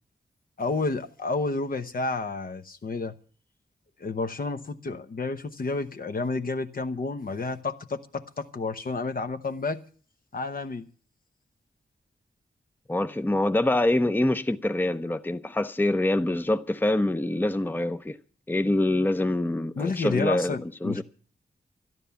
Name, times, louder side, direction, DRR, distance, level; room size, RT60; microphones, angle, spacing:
voice 1, 0.6-3.1 4.0-9.8 10.3-10.9 19.8-21.0, left 3 dB, 55° left, 1.0 m, -30 dB
voice 2, 12.9-18.2 18.5-20.6 20.8-21.0, left 1 dB, 10° left, 0.6 m, -25 dB
12.5 x 12.5 x 7.0 m
wide cardioid pair, 100°, 17 cm